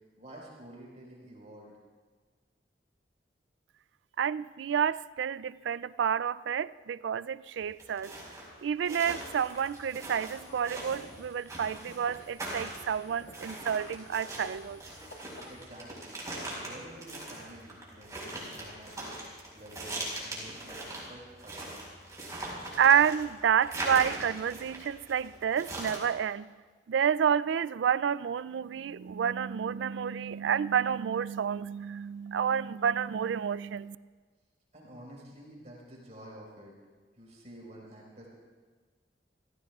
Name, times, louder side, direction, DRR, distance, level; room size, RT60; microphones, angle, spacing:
voice 1, 0.0-1.7 15.5-16.2 16.6-19.1 19.5-21.9 34.7-36.7 37.2-38.3, right 1 dB, 40° right, 4.6 m, -49 dB
voice 2, 4.2-8.1 8.6-14.8 22.8-26.5 26.9-34.0, right 8 dB, 85° right, 0.3 m, -29 dB
sound 1, 7.6-26.1, right 1 dB, 20° right, 4.9 m, -41 dB
sound 2, 9.1-15.7, left 2 dB, 80° left, 2.1 m, -53 dB
Zipper (clothing), 18.0-21.2 21.5-21.6 22.0-22.1 22.3-24.8 25.0-25.1, left 1 dB, 30° left, 6.2 m, -55 dB
29.0 x 16.0 x 2.4 m
head